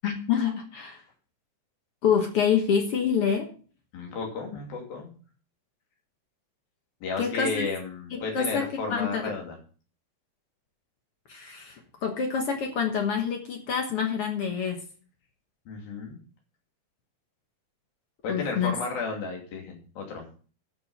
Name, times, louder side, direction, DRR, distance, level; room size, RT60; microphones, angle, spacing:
voice 1, 0.0-1.0 2.0-3.5 7.2-7.7 8.1-9.3 11.3-14.8 18.3-18.7, left 7 dB, 60° left, 4 dB, 1.5 m, -27 dB
voice 2, 3.9-5.1 7.0-9.6 15.7-16.2 18.2-20.3, left 4 dB, 80° left, 1 dB, 4.5 m, -33 dB
11.5 x 6.2 x 5.6 m, 0.40 s
omnidirectional pair, 4.1 m